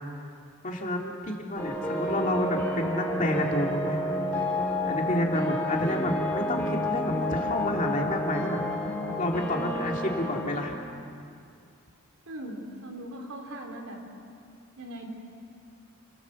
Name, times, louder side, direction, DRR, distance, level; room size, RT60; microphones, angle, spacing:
voice 1, 0.6-4.0 4.3-4.5 4.9-8.6 9.2-10.8, left 1 dB, 35° left, 0 dB, 2.7 m, -29 dB
sound 1, 1.6-10.4, left 1 dB, 10° left, 5.1 m, -30 dB
voice 2, 12.3-14.0 14.8-15.1, right 1 dB, 80° right, 2 dB, 3.8 m, -39 dB
29.5 x 18.5 x 7.2 m, 2.4 s
head